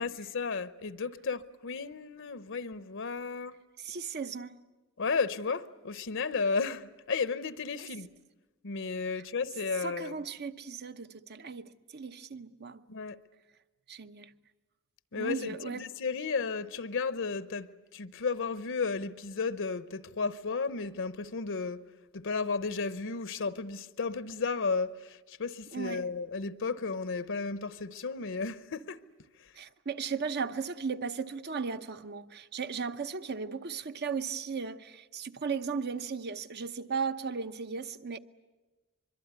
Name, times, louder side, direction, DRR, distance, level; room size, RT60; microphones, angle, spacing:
voice 1, 0.0-3.6 5.0-8.1 8.6-10.1 12.9-13.2 15.1-21.8 22.1-29.0, left 4 dB, 65° left, 0.8 m, -33 dB
voice 2, 3.8-4.6 7.8-7.9 9.1-9.2 9.8-12.8 13.9-14.3 15.1-15.9 25.7-26.1 29.5-38.2, right 5 dB, 50° right, 0.8 m, -36 dB
24.5 x 23.0 x 9.5 m
head